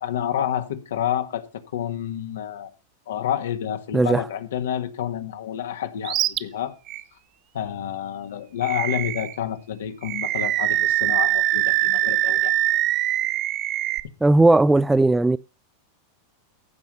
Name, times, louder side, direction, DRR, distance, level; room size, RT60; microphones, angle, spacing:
voice 1, 0.0-2.7 3.1-6.7 7.5-12.5, left 10 dB, 75° left, 1.8 m, -29 dB
voice 2, 3.9-4.3 14.2-15.4, right 2 dB, 10° right, 0.4 m, -17 dB
Animal, 6.0-6.4 6.9-7.0 8.6-9.4 10.0-14.0, right 15 dB, 45° right, 0.8 m, -23 dB
15.0 x 6.1 x 5.4 m
hypercardioid pair, 100°, 0 cm